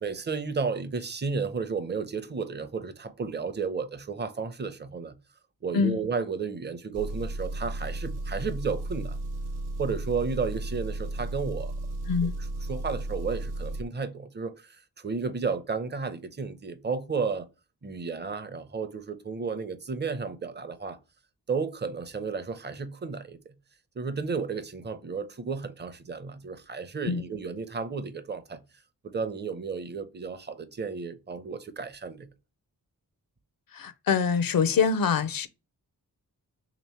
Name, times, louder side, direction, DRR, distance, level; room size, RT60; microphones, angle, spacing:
voice 1, 0.0-5.2 5.6-9.2 9.8-11.7 12.2-17.5 17.8-21.0 21.5-23.5 24.0-28.6 29.1-32.3, right 5 dB, 25° right, 0.6 m, -33 dB
Engine, 6.9-13.8, right 2 dB, 90° right, 0.8 m, -34 dB
voice 2, 33.7-35.5, left 6 dB, 60° left, 0.6 m, -24 dB
3.2 x 3.0 x 4.3 m
wide cardioid pair, 75°, 38 cm